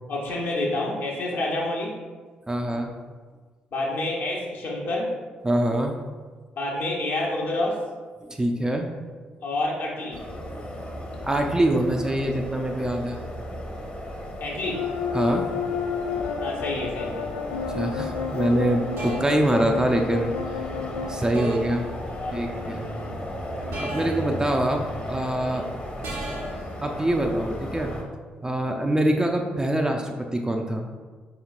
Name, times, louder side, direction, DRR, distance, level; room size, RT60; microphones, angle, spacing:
voice 1, 0.1-1.9 3.7-5.1 6.6-7.8 9.4-10.2 14.4-14.9 16.4-17.3 20.7-21.1 22.0-23.1 24.0-24.4, left 2 dB, 55° left, -2 dB, 1.0 m, -29 dB
voice 2, 2.5-2.9 5.4-5.9 8.2-9.0 10.5-10.6 11.2-13.2 15.1-15.5 17.7-20.3 21.1-21.9 22.3-23.2 23.8-24.8 25.1-25.7 26.8-27.9 28.3-30.9, right 1 dB, 15° right, 3 dB, 0.4 m, -24 dB
sound 1, 10.1-28.0, left 1 dB, 30° left, 0.9 m, -35 dB
sound 2, 14.7-21.2, left 7 dB, 75° left, 0.4 m, -31 dB
sound 3, 17.7-18.0 19.0-19.5 21.3-21.8 23.7-24.3 26.0-26.6, right 2 dB, 65° right, 0.7 m, -34 dB
4.9 x 3.0 x 2.4 m, 1.5 s
figure-of-eight pair, 40°, 4 cm